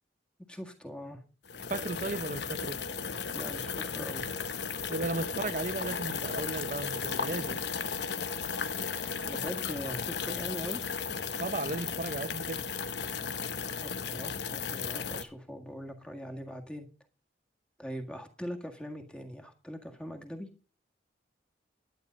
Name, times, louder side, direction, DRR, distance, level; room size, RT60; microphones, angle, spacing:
voice 1, 0.5-1.2 3.3-4.3 7.3-7.4 9.2-10.8 13.8-16.9 17.8-20.5, equal, 5° left, 1.7 m, -41 dB
sound 1, 1.4-15.2, left 6 dB, 70° left, 0.9 m, -35 dB
voice 2, 1.7-2.8 4.9-7.6 11.4-12.8, right 2 dB, 45° right, 0.7 m, -35 dB
11.5 x 9.1 x 5.2 m
head